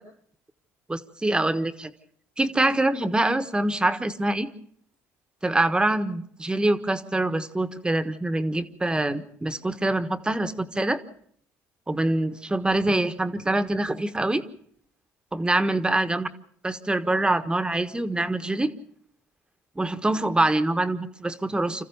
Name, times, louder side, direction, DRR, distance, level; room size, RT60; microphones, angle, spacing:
voice 1, 0.9-1.9 2.4-4.5 5.4-11.0 11.9-14.4 15.3-16.3 16.6-18.7 19.8-21.8, right 2 dB, 15° right, 11 dB, 1.4 m, -25 dB
27.0 x 14.5 x 7.0 m, 0.64 s
supercardioid pair, 70°, 7 cm